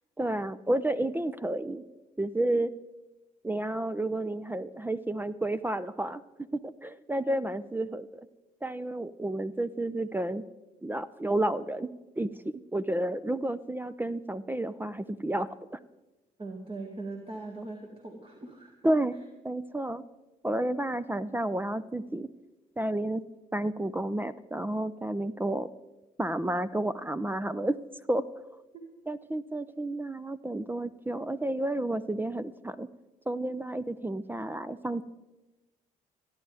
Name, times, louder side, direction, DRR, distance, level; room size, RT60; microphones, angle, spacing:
voice 1, 0.2-1.8 2.2-2.7 3.4-6.2 6.5-8.3 8.6-10.4 10.8-11.9 12.2-12.3 12.7-15.8 18.8-19.2 19.4-20.0 20.4-22.3 22.8-23.2 23.5-25.7 26.2-27.8 28.1-28.2 29.1-32.9 33.3-35.0, right 1 dB, 10° right, 14 dB, 0.5 m, -31 dB
voice 2, 16.4-18.7 28.7-28.8, right 2 dB, 35° right, 1 dB, 2.0 m, -40 dB
25.0 x 10.5 x 3.5 m, 1.1 s
hypercardioid pair, 55°, 17 cm